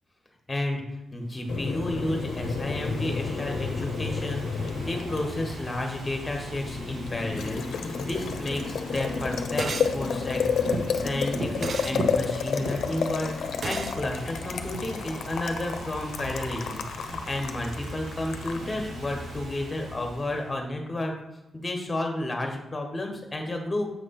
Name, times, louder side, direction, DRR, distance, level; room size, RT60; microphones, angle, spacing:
voice 1, 0.5-0.8 1.1-21.1 21.5-23.9, left 1 dB, 15° left, 2 dB, 1.2 m, -32 dB
Ocean / Fireworks, 1.3-20.6, right 1 dB, 65° right, 1.2 m, -39 dB
Boiling, 1.5-19.4, left 5 dB, 75° left, 0.5 m, -32 dB
sound 1, 9.6-10.0 11.6-12.0 13.6-14.0, right 4 dB, 45° right, 0.4 m, -33 dB
7.6 x 3.1 x 5.8 m, 0.92 s
wide cardioid pair, 145°, 0 cm